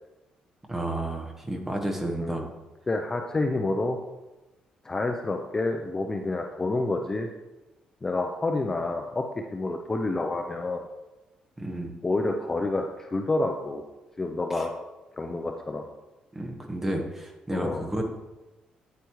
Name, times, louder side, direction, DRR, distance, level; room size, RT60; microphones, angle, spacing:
voice 1, 0.7-2.5 11.6-12.0 14.5-14.6 16.3-18.0, right 1 dB, 15° right, 2 dB, 1.2 m, -31 dB
voice 2, 2.2-2.5 2.9-4.0 4.8-7.3 8.0-9.2 9.5-10.9 12.0-13.8 14.2-14.7 15.1-15.8 17.5-17.8, left 2 dB, 20° left, 3 dB, 0.5 m, -28 dB
9.3 x 8.2 x 3.1 m, 1.1 s
cardioid pair, 145°, 3 cm